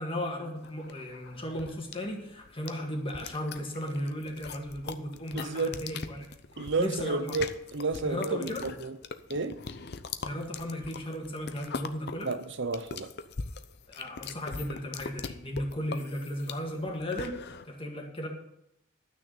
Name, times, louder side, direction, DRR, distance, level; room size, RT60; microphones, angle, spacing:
voice 1, 0.0-6.3 6.8-7.3 8.0-8.7 10.2-12.3 13.9-18.3, left 1 dB, 25° left, 1.8 m, -35 dB
sound 1, 0.6-17.7, left 5 dB, 55° left, 0.7 m, -41 dB
voice 2, 5.3-5.8 6.6-9.0 9.3-9.6 12.2-13.1, right 3 dB, 60° right, 0.8 m, -31 dB
12.0 x 6.3 x 7.0 m
head